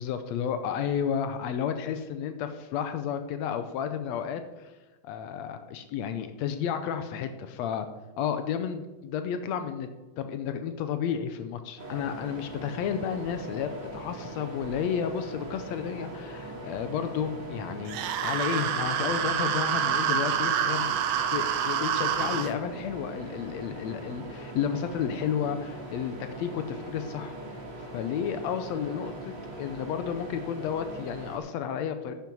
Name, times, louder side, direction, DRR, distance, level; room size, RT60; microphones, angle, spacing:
voice 1, 0.0-4.7 5.0-7.9 8.2-9.9 10.2-20.9 21.3-27.3 27.9-29.3 29.6-32.1, left 8 dB, 75° left, 9 dB, 1.6 m, -32 dB
sound 1, 11.8-31.4, right 1 dB, 35° right, 2.7 m, -41 dB
sound 2, 17.9-22.5, right 9 dB, 75° right, 2.2 m, -27 dB
10.5 x 9.2 x 5.4 m, 1.2 s
omnidirectional pair, 3.7 m